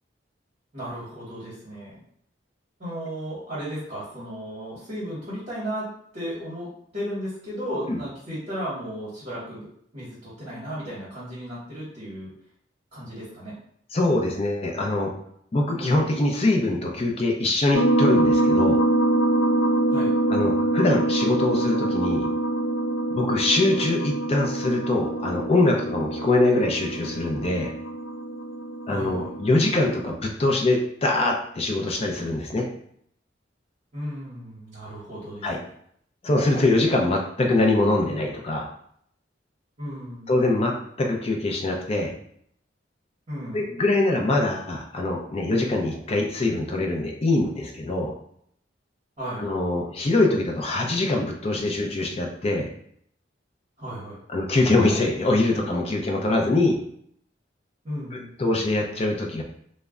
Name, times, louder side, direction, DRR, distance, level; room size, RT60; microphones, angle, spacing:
voice 1, 0.7-2.0 2.8-5.9 6.1-9.7 9.9-12.3 12.9-13.5 19.9-20.1 28.9-29.3 33.9-35.7 39.8-40.3 43.3-43.6 49.2-49.4 53.8-54.2 57.8-58.3, equal, 40° right, -10 dB, 0.9 m, -34 dB
voice 2, 13.9-15.1 15.5-18.8 20.3-22.3 23.1-27.7 28.9-32.7 35.4-35.6 36.2-38.7 40.3-42.1 43.5-48.1 49.4-52.7 54.3-56.8 58.1-59.4, left 2 dB, 35° left, 1 dB, 0.4 m, -23 dB
sound 1, 17.7-30.1, right 1 dB, 85° left, 0.5 m, -24 dB
2.2 x 2.1 x 3.5 m, 0.67 s
head